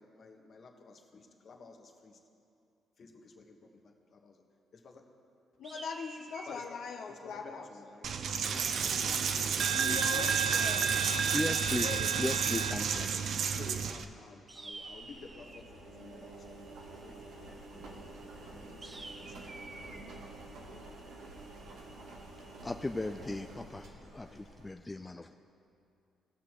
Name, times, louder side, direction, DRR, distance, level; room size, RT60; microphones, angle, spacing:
voice 1, 0.0-2.2 3.0-4.4 4.7-5.0 6.5-6.6 7.1-8.1 13.0-13.2 13.5-18.0 18.4-20.0 20.3-20.4 23.7-23.8 24.3-25.0 25.3-25.4, left 4 dB, 50° left, 3 dB, 1.2 m, -54 dB
voice 2, 5.6-7.7 9.7-11.1 11.6-12.2, left 6 dB, 75° left, 2 dB, 0.7 m, -41 dB
sound 1, 5.6-6.8 10.2-11.3 14.5-15.7 18.8-20.0, right 3 dB, 30° right, 0.7 m, -48 dB
Coin (dropping), 8.0-14.0, right 6 dB, 65° right, 0.5 m, -30 dB
voice 3, 11.3-11.9 12.2-13.1 20.8-20.9 22.6-23.8 24.2-25.3, left 2 dB, 15° left, 6 dB, 0.3 m, -36 dB
Engine, 14.7-24.7, right 2 dB, 80° right, 1.3 m, -49 dB
18.5 x 6.2 x 3.0 m, 2.5 s
cardioid pair, 90°, 0 cm